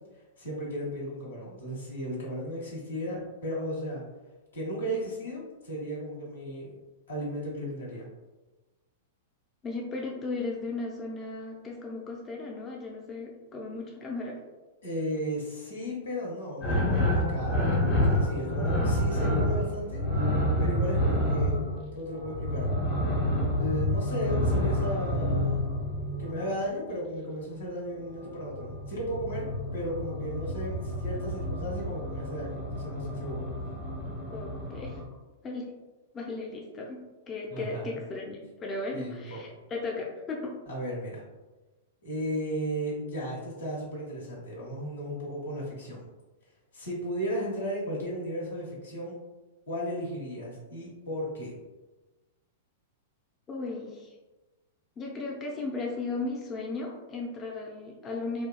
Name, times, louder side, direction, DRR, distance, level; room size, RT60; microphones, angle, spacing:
voice 1, 0.4-4.0 4.5-6.7 7.1-8.1 14.8-20.0 20.6-21.6 21.9-22.7 23.5-25.6 26.2-29.4 29.7-33.4 37.5-38.0 38.9-39.4 40.7-41.2 42.0-46.0 46.7-49.2 49.7-51.5, equal, 80° left, -4 dB, 1.0 m, -35 dB
voice 2, 9.6-14.4 34.3-35.0 35.4-35.7 36.1-40.6 53.5-54.1 55.0-58.5, left 3 dB, 25° left, -2 dB, 0.4 m, -36 dB
sound 1, 16.6-26.6 28.1-35.0, left 1 dB, 50° left, 1.0 m, -28 dB
2.7 x 2.3 x 2.2 m, 1.2 s
hypercardioid pair, 105°, 0 cm